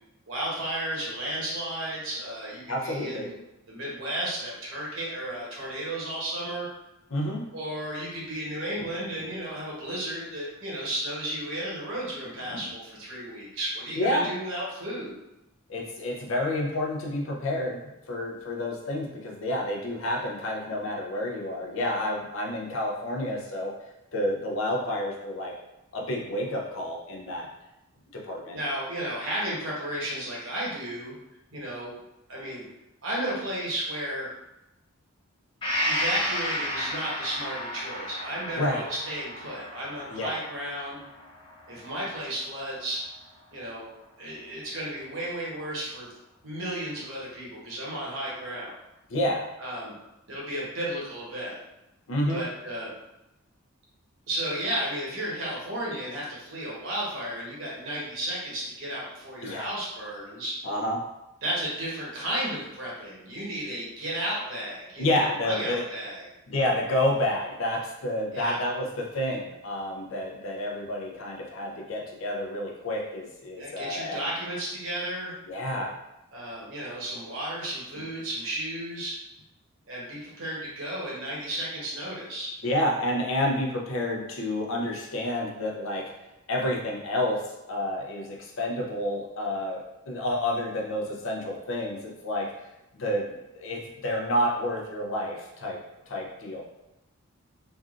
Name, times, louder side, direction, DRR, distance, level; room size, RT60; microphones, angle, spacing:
voice 1, 0.3-3.3 3.7-6.7 7.5-15.1 28.5-31.2 31.5-31.9 32.3-32.7 33.0-34.3 35.8-41.0 41.7-43.0 43.5-43.9 44.2-46.1 46.4-48.8 49.6-49.9 50.3-51.6 52.3-52.9 54.3-60.6 61.4-66.3 68.3-68.6 73.5-75.4 76.3-79.1 79.9-82.5, right 1 dB, 60° right, -5 dB, 1.0 m, -33 dB
voice 2, 2.7-3.3 7.1-7.5 14.0-14.3 15.7-17.8 18.1-23.8 24.1-25.5 25.9-27.5 28.1-28.6 38.6-38.8 40.1-40.4 49.1-49.5 52.1-52.4 59.4-59.7 60.6-61.0 65.0-65.8 66.5-74.3 75.5-75.9 82.6-86.1 86.5-87.4 87.7-92.5 93.0-95.8 96.1-96.6, left 1 dB, 65° left, -1 dB, 0.6 m, -29 dB
Gong, 35.6-43.2 43.6-43.7, left 1 dB, 20° left, 0.6 m, -33 dB
3.3 x 2.4 x 2.4 m, 0.93 s
head